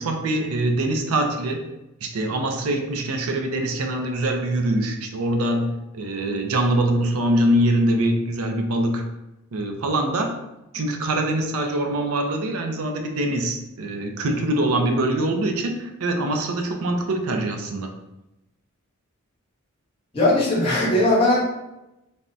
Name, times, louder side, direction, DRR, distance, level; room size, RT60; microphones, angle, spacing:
voice 1, 0.0-1.6 2.0-5.7 5.9-9.0 9.5-10.3 10.7-17.9, right 1 dB, 75° right, 4 dB, 0.4 m, -23 dB
voice 2, 20.1-21.4, left 1 dB, 25° left, -7 dB, 0.9 m, -19 dB
3.4 x 2.0 x 2.6 m, 0.93 s
head